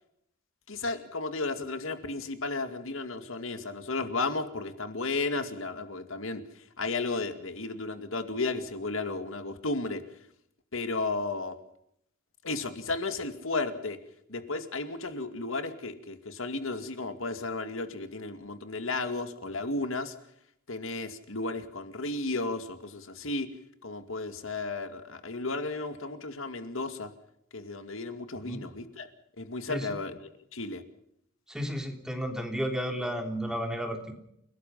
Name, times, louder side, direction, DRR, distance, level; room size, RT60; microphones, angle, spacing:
voice 1, 0.7-6.4 6.8-10.0 10.7-11.6 12.4-14.0 14.3-20.1 20.7-23.5 23.8-27.1 27.5-29.1 29.4-30.8, left 3 dB, 70° left, 9 dB, 2.3 m, -34 dB
voice 2, 31.5-34.1, equal, 5° right, 4 dB, 3.3 m, -33 dB
30.0 x 18.5 x 5.6 m, 0.75 s
head